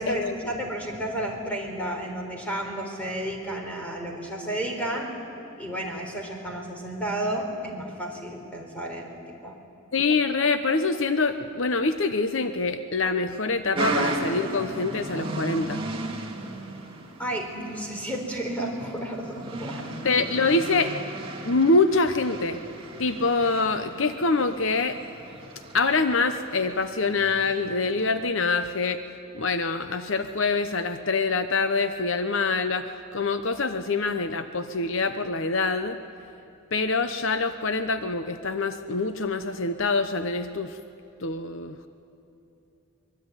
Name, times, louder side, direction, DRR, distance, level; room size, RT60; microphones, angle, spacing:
voice 1, 0.0-5.1 5.6-9.2 9.4-9.5 17.2-20.0, right 1 dB, 5° left, 1 dB, 4.1 m, -32 dB
voice 2, 9.9-15.8 20.0-20.9 21.4-22.6 23.0-25.0 25.7-29.0 29.3-36.0 36.7-40.8 41.2-41.8, left 3 dB, 60° left, 9 dB, 0.9 m, -25 dB
sound 1, 13.7-28.1, right 2 dB, 25° right, 2.6 m, -35 dB
24.5 x 23.0 x 9.8 m, 2.9 s
head